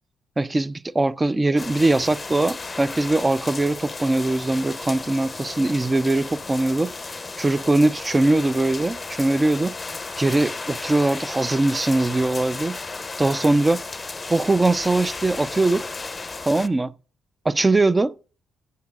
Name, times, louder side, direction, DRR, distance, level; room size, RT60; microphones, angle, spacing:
voice 1, 0.4-6.9 7.4-9.8 10.2-12.8 13.2-13.8 14.3-15.9 16.5-16.9 17.4-18.1, right 2 dB, 20° right, 0.4 m, -21 dB
sound 1, 1.6-16.7, left 3 dB, 25° left, 0.6 m, -34 dB
15.0 x 7.7 x 2.4 m
cardioid pair, 90°, 0 cm